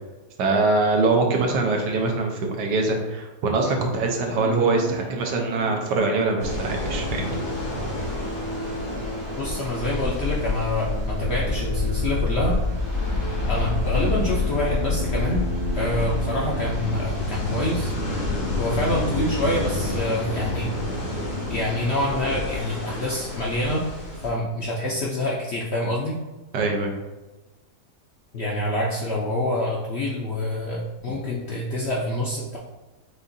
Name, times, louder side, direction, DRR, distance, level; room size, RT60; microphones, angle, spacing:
voice 1, 0.4-7.4 26.5-26.9, right 3 dB, 85° right, 2 dB, 1.4 m, -23 dB
sound 1, 4.4-17.1, right 2 dB, 70° right, 0.9 m, -36 dB
sound 2, 6.4-24.3, left 2 dB, 80° left, 2.3 m, -28 dB
voice 2, 9.4-12.6 13.5-15.5 15.8-17.9 18.6-20.8 21.5-23.9 24.2-26.2 28.3-32.6, left 1 dB, 65° left, -3 dB, 0.6 m, -26 dB
6.5 x 2.4 x 2.6 m, 1.1 s
omnidirectional pair, 1.8 m